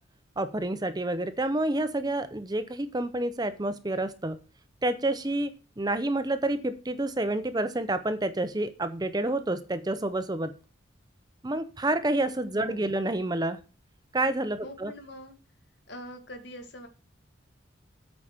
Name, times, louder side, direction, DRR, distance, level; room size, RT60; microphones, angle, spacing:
voice 1, 0.4-4.4 4.8-10.5 11.4-13.6 14.1-14.9, right 2 dB, 20° right, 11 dB, 0.7 m, -29 dB
voice 2, 12.6-12.9 14.6-15.3 15.9-16.9, equal, 60° left, 6 dB, 2.1 m, -43 dB
8.5 x 4.9 x 7.3 m, 0.33 s
head